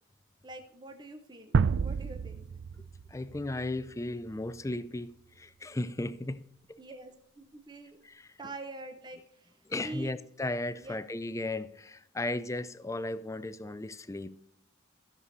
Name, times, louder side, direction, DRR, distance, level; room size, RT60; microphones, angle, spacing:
voice 1, 0.4-1.5 1.8-2.5 6.8-8.0 8.4-10.1 10.8-11.0, right 2 dB, 20° right, 5 dB, 0.8 m, -45 dB
sound 1, 1.5-4.5, right 5 dB, 60° right, 0.3 m, -31 dB
voice 2, 2.8-6.8 8.0-8.4 9.7-14.4, left 2 dB, 15° left, 15 dB, 0.4 m, -36 dB
14.0 x 6.8 x 4.0 m, 0.76 s
head